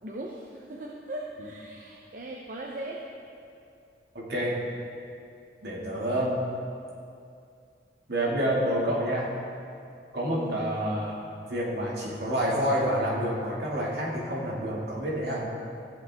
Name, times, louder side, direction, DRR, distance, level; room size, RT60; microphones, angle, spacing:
voice 1, 0.0-3.0 10.3-10.6, right 1 dB, 45° right, -2 dB, 0.7 m, -39 dB
voice 2, 4.1-4.6 5.6-6.4 8.1-9.3 10.1-11.2 11.5-15.5, equal, 65° right, -4 dB, 2.2 m, -28 dB
15.0 x 8.6 x 3.5 m, 2.5 s
head